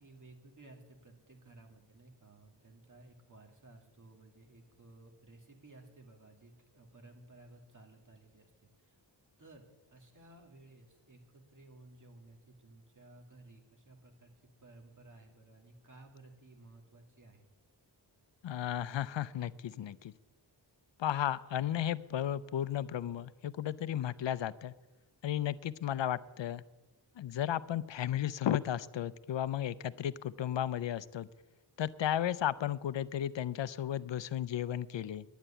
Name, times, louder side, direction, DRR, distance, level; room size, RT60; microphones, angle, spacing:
voice 1, 0.0-9.0 9.4-17.5, right 2 dB, 45° right, 2 dB, 2.2 m, -57 dB
voice 2, 18.4-20.1 21.0-24.7 25.2-26.6 27.2-31.3 31.8-35.2, left 11 dB, 75° left, 17 dB, 0.5 m, -34 dB
10.5 x 8.1 x 10.0 m, 1.2 s
wide cardioid pair, 115°, 44 cm